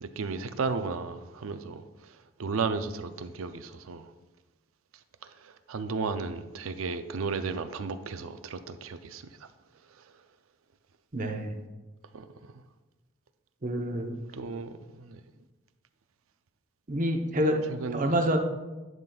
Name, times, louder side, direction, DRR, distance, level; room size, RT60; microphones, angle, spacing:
voice 1, 0.0-1.8 2.4-4.1 5.7-9.2 12.1-12.3 13.9-15.2 17.7-18.2, right 4 dB, 90° right, 0.5 m, -34 dB
voice 2, 11.1-11.6 13.6-14.1 16.9-17.6 17.9-18.4, equal, 40° right, 0.8 m, -27 dB
10.5 x 5.9 x 2.3 m
head